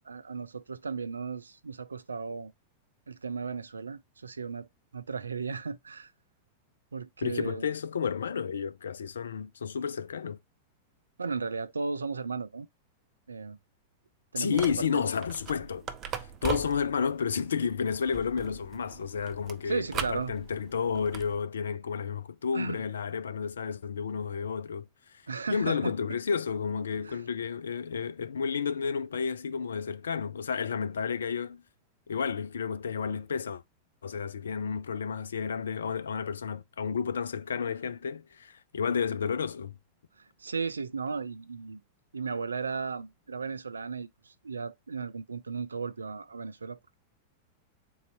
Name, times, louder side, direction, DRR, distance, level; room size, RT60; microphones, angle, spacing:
voice 1, 0.1-2.5 3.1-4.7 4.9-6.1 6.9-7.7 11.2-12.7 13.3-13.6 14.3-15.1 19.7-20.3 22.5-22.8 25.3-25.9 27.0-27.2 40.2-41.8 42.1-46.8, right 4 dB, 85° right, 0.4 m, -35 dB
voice 2, 7.2-10.4 14.4-15.9 16.4-25.2 25.5-31.6 32.1-33.6 34.0-39.8, left 6 dB, 75° left, 0.4 m, -31 dB
sound 1, 14.5-21.4, right 7 dB, 35° right, 0.7 m, -40 dB
3.9 x 2.6 x 4.4 m
figure-of-eight pair, 95°, 0 cm